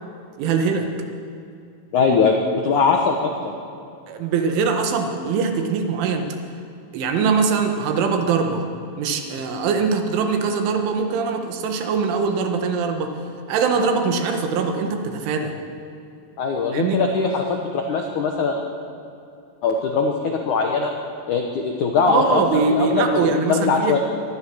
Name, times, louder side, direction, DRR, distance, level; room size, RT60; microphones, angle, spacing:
voice 1, 0.4-0.9 4.1-6.3 6.9-8.7 9.0-13.2 13.5-15.5 16.7-17.1 22.1-24.0, right 5 dB, 85° right, 5 dB, 4.1 m, -22 dB
voice 2, 1.9-3.5 16.4-18.6 19.6-20.9 21.3-22.4 22.7-24.0, left 4 dB, 75° left, 2 dB, 1.8 m, -21 dB
24.5 x 19.0 x 6.4 m, 2.5 s
omnidirectional pair, 5.4 m